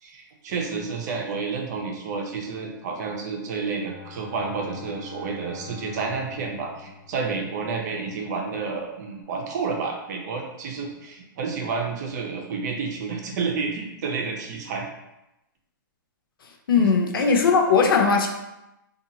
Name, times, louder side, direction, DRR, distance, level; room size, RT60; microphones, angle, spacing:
voice 1, 0.0-14.9 16.8-16.9, right 4 dB, 55° right, 1 dB, 0.6 m, -30 dB
Bowed string instrument, 3.7-8.2, left 6 dB, 30° right, 1.0 m, -44 dB
voice 2, 16.7-18.3, left 5 dB, 90° left, 3 dB, 0.5 m, -19 dB
2.8 x 2.4 x 2.7 m, 0.92 s
hypercardioid pair, 145°, 11 cm